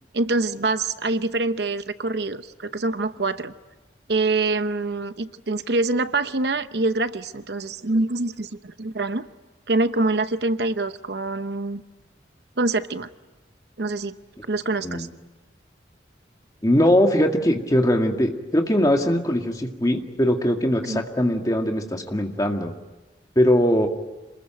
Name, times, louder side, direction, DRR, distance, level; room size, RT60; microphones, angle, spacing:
voice 1, 0.1-3.5 4.1-9.2 9.7-11.8 12.6-13.1 13.8-14.2 14.5-15.1 20.9-21.0, right 2 dB, 65° right, 11 dB, 0.9 m, -25 dB
voice 2, 16.6-22.7 23.4-23.9, equal, 20° left, 3 dB, 2.0 m, -21 dB
27.5 x 20.5 x 9.1 m, 1.1 s
head